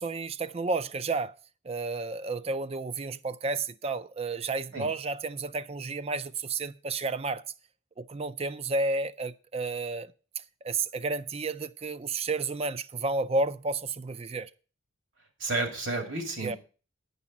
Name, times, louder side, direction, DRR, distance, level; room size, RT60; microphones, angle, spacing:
voice 1, 0.0-1.3 1.6-7.4 8.0-10.1 10.4-14.5 16.4-16.6, right 3 dB, 30° right, 0.4 m, -31 dB
voice 2, 15.4-16.6, right 2 dB, 65° right, 2.5 m, -31 dB
9.7 x 5.5 x 7.2 m
head